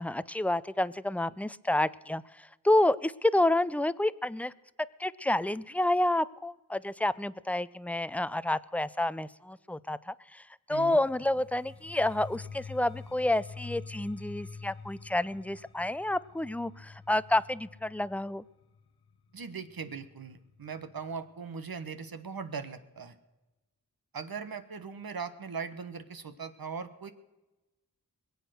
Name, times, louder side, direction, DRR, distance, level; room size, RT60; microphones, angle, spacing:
voice 1, 0.0-4.5 5.0-10.4 10.7-18.4, left 1 dB, 5° left, 17 dB, 0.5 m, -29 dB
sound 1, 11.1-20.9, left 5 dB, 80° left, 1.0 m, -47 dB
voice 2, 19.3-23.2 24.1-27.1, right 5 dB, 70° right, 10 dB, 1.3 m, -39 dB
21.5 x 8.2 x 6.5 m, 1.1 s
cardioid pair, 40°, 37 cm